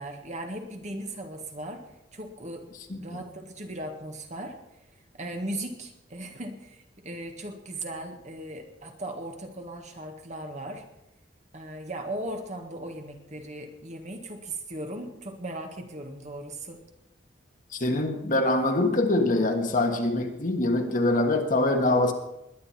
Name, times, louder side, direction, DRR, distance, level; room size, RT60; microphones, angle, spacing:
voice 1, 0.0-1.8 2.1-2.7 3.0-4.6 5.1-10.9 11.5-16.9, right 1 dB, 40° right, 4 dB, 1.7 m, -37 dB
voice 2, 2.9-3.2 17.7-22.1, left 2 dB, 45° left, 4 dB, 1.5 m, -24 dB
20.5 x 10.0 x 4.3 m, 0.88 s
head